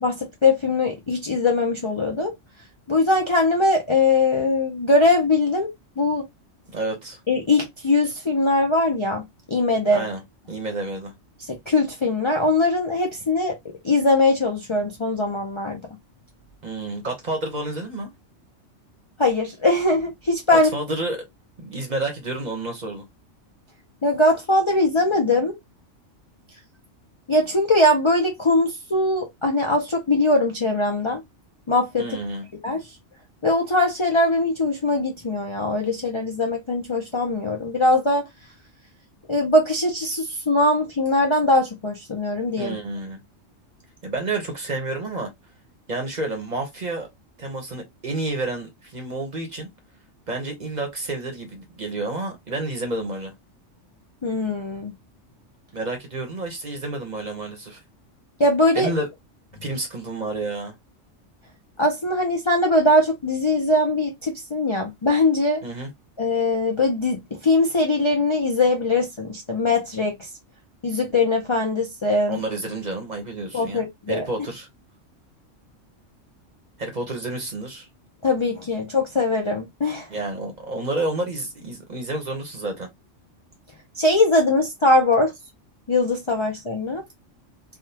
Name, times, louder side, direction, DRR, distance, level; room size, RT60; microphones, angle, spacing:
voice 1, 0.0-2.3 2.9-6.2 7.3-10.1 11.5-13.6 13.8-15.8 19.2-20.7 24.0-25.5 27.3-31.2 31.7-32.1 32.6-32.9 33.4-38.2 39.3-42.7 54.2-54.9 58.4-58.9 61.8-65.6 66.2-70.3 70.8-72.4 73.5-74.3 78.2-80.1 84.0-85.3 85.9-87.0, left 2 dB, 35° left, 0.4 m, -21 dB
voice 2, 6.7-7.2 9.9-10.2 10.5-11.1 16.6-18.1 20.5-21.2 21.6-23.0 32.0-32.5 42.6-43.2 44.0-45.3 45.9-47.1 47.4-49.7 50.3-53.3 55.7-57.8 58.7-59.1 59.6-60.7 65.6-65.9 72.3-74.7 76.8-77.9 80.1-82.9, right 2 dB, 40° right, 0.9 m, -30 dB
3.5 x 2.2 x 2.8 m
omnidirectional pair, 1.3 m